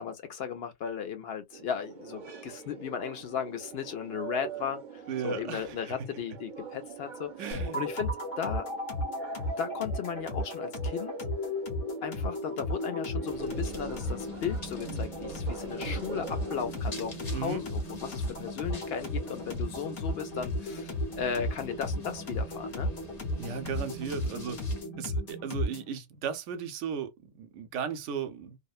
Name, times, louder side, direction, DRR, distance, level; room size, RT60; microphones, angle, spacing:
voice 1, 0.0-4.8 5.2-8.1 8.4-8.6 9.6-11.1 12.0-22.9, left 7 dB, 60° left, 0.8 m, -36 dB
sound 1, 1.5-16.8, right 7 dB, 50° right, 0.7 m, -45 dB
voice 2, 5.1-6.1 7.4-7.8 17.3-17.6 23.4-24.6 25.0-28.6, right 7 dB, 80° right, 0.9 m, -36 dB
sound 2, 7.5-25.9, left 1 dB, 90° left, 1.2 m, -34 dB
sound 3, 13.3-24.8, left 2 dB, 35° left, 1.0 m, -47 dB
2.7 x 2.1 x 2.3 m
omnidirectional pair, 1.2 m